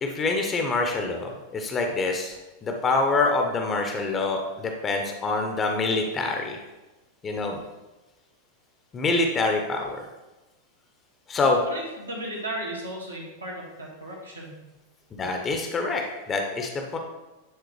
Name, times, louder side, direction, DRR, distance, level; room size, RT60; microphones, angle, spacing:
voice 1, 0.0-6.6 7.2-7.6 8.9-10.0 11.3-11.6 15.2-17.0, left 3 dB, 25° left, 3 dB, 0.8 m, -26 dB
voice 2, 11.4-14.6, right 1 dB, 80° right, -3 dB, 1.7 m, -35 dB
9.6 x 3.8 x 3.2 m, 1.1 s
figure-of-eight pair, 90°, 0 cm